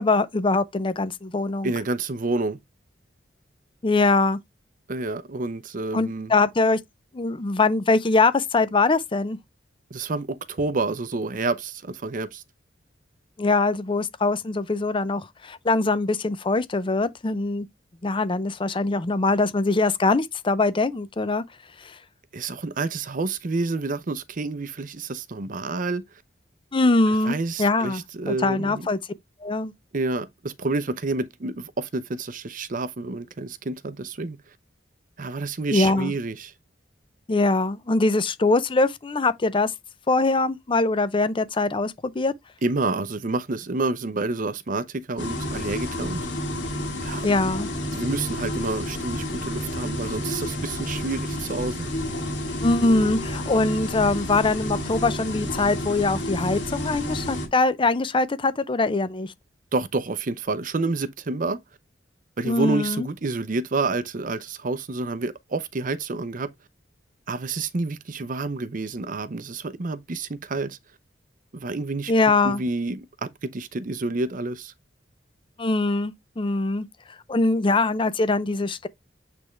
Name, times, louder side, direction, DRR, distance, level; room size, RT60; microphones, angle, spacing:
voice 1, 0.0-1.7 3.8-4.4 5.9-6.8 7.1-9.4 13.4-17.7 18.0-21.4 21.8-21.9 26.7-28.0 28.3-29.0 29.4-29.7 35.7-36.1 37.3-39.7 40.1-42.3 47.2-47.7 52.6-59.3 62.4-63.1 72.1-72.6 75.6-76.9 77.3-78.9, left 3 dB, 30° left, 0.5 m, -22 dB
voice 2, 1.6-2.6 4.9-6.3 9.9-12.4 22.3-26.0 27.2-28.9 29.9-34.4 35.2-36.5 42.6-46.3 47.0-47.3 47.9-51.9 59.7-61.6 62.4-66.5 67.3-70.8 71.5-72.1 72.4-74.7, right 3 dB, 45° right, 0.6 m, -29 dB
sound 1, 45.2-57.5, left 1 dB, 75° left, 2.4 m, -30 dB
8.5 x 3.5 x 3.2 m
head